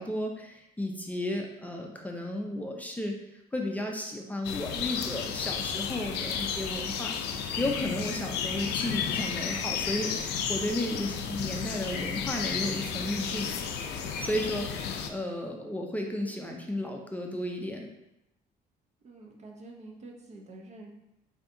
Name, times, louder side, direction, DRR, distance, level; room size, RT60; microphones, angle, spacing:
voice 1, 0.0-3.2 3.5-13.5 14.2-17.9, left 1 dB, 10° left, 1 dB, 0.5 m, -34 dB
sound 1, 4.4-15.1, left 7 dB, 80° left, 0.4 m, -33 dB
voice 2, 19.0-20.9, right 2 dB, 40° right, 1 dB, 0.7 m, -47 dB
4.6 x 2.7 x 2.6 m, 0.87 s
cardioid pair, 110°, 17 cm